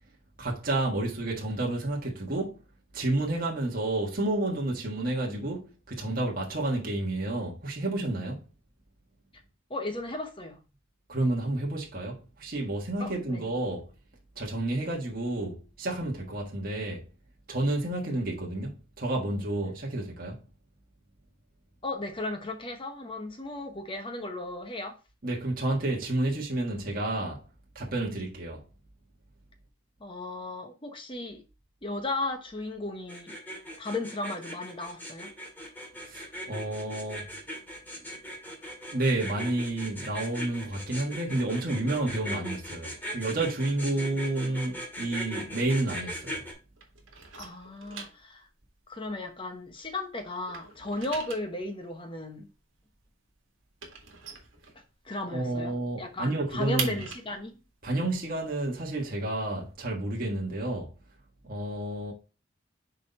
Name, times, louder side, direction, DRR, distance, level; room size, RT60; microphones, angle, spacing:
voice 1, 0.4-2.6 2.9-8.4 11.1-13.9 14.3-17.1 17.5-20.4 25.2-27.4 27.7-28.6 36.0-37.3 38.9-46.4 55.3-57.0 57.8-60.9 61.4-62.1, right 2 dB, 45° right, 1.5 m, -30 dB
voice 2, 9.7-10.6 13.0-13.4 21.8-24.9 30.0-31.4 31.8-33.4 33.8-35.3 47.4-48.5 48.9-52.5 55.0-57.6, left 2 dB, 25° left, 0.9 m, -35 dB
sound 1, 33.1-46.5, equal, 10° left, 2.0 m, -39 dB
sound 2, 45.1-46.5 46.7-50.0 50.3-55.3 55.6-55.7 56.0-59.7, right 6 dB, 70° right, 1.8 m, -42 dB
6.2 x 4.1 x 4.1 m
head